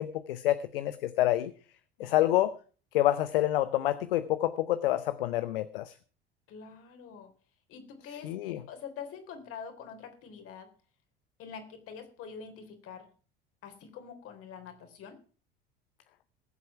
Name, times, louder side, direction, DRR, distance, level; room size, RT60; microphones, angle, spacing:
voice 1, 0.0-1.5 2.0-2.5 2.9-5.9 8.2-8.6, left 14 dB, 65° left, 14 dB, 0.8 m, -27 dB
voice 2, 6.5-7.3 7.7-8.3 8.7-10.7 11.4-13.1 13.6-15.2, left 6 dB, 45° left, 7 dB, 3.5 m, -45 dB
19.5 x 7.7 x 5.8 m, 0.41 s
figure-of-eight pair, 70°, 30 cm